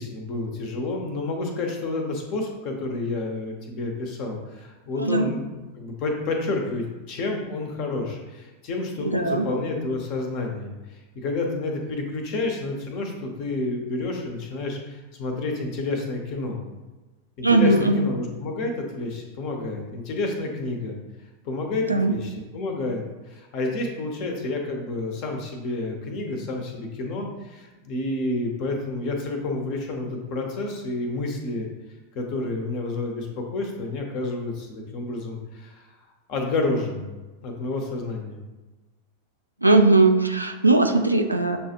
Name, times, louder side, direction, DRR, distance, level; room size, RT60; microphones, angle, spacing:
voice 1, 0.0-16.6 17.4-21.0 21.4-31.7 32.1-36.0 36.3-37.1 37.4-38.4, left 2 dB, 40° left, 2 dB, 0.9 m, -29 dB
voice 2, 5.0-5.3 9.0-9.5 17.4-18.1 21.9-22.1 39.6-41.6, right 2 dB, 85° right, 5 dB, 0.4 m, -19 dB
6.9 x 2.4 x 2.9 m, 1.2 s
figure-of-eight pair, 90°, 0 cm